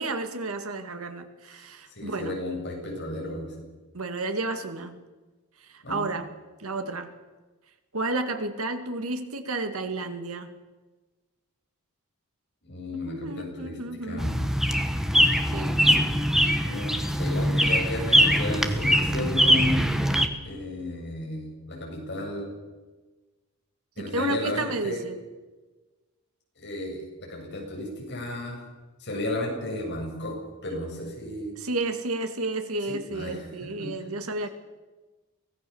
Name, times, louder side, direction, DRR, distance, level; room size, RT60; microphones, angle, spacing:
voice 1, 0.0-2.4 3.9-5.0 5.6-6.3 6.6-7.1 7.9-10.5 13.1-14.4 15.5-15.8 24.0-25.2 31.6-34.5, right 2 dB, 70° right, 7 dB, 2.1 m, -32 dB
voice 2, 1.9-3.6 5.8-6.0 12.6-14.4 16.6-19.8 20.4-22.5 24.0-25.0 26.6-28.6 29.0-30.3 30.6-31.5 32.9-33.9, left 1 dB, 50° left, -1 dB, 7.8 m, -33 dB
sound 1, 14.2-20.3, equal, ahead, 1.4 m, -22 dB
24.0 x 18.0 x 7.2 m, 1.2 s
head